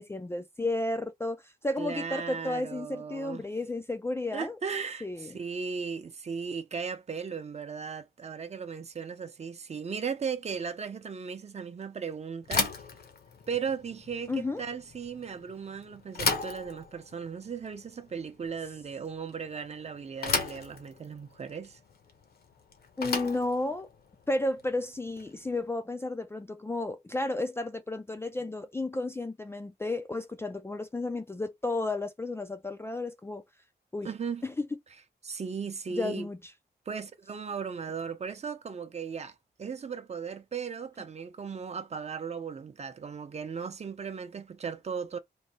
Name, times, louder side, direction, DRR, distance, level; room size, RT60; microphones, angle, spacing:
voice 1, 0.0-4.6 5.0-5.4 14.3-14.6 23.0-23.9 24.3-33.4 33.9-34.1 34.4-34.7 35.9-36.4, left 2 dB, 15° left, 0.3 m, -32 dB
voice 2, 1.8-3.5 4.3-12.7 13.5-21.8 34.0-34.4 35.2-36.3 36.9-45.2, right 6 dB, 40° right, 0.6 m, -37 dB
Bicycle / Thump thud, 12.4-25.5, left 4 dB, 70° left, 0.9 m, -36 dB
3.2 x 2.6 x 4.2 m
wide cardioid pair, 170°, 17 cm